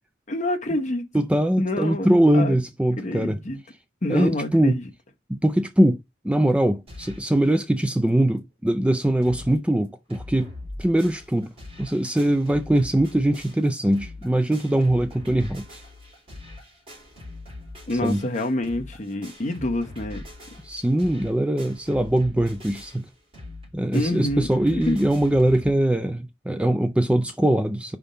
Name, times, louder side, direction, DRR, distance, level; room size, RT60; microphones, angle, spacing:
voice 1, 0.3-1.0 1.6-2.1 2.3-2.6 3.0-3.6 4.0-4.9 17.9-20.2 23.9-24.5 24.7-25.0, left 1 dB, 40° left, 1.1 m, -27 dB
voice 2, 1.1-3.4 4.1-4.8 5.3-6.0 6.2-10.5 10.8-11.5 11.8-15.7 18.0-18.2 20.6-23.1 23.7-28.0, right 1 dB, 5° right, 0.4 m, -22 dB
sound 1, 6.9-7.3 7.8-7.9 8.1-8.2 8.7-8.8 9.0-9.6 9.8-25.7, left 2 dB, 30° right, 3.7 m, -42 dB
5.1 x 3.6 x 5.5 m
head